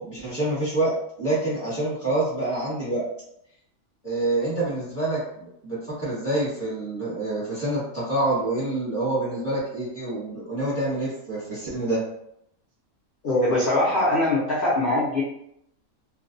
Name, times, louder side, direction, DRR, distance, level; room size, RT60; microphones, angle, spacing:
voice 1, 0.0-3.0 4.0-12.0, right 2 dB, 10° right, -8 dB, 0.8 m, -27 dB
voice 2, 13.2-15.2, left 1 dB, 60° left, -6 dB, 0.6 m, -22 dB
2.4 x 2.2 x 2.5 m, 0.76 s
omnidirectional pair, 1.6 m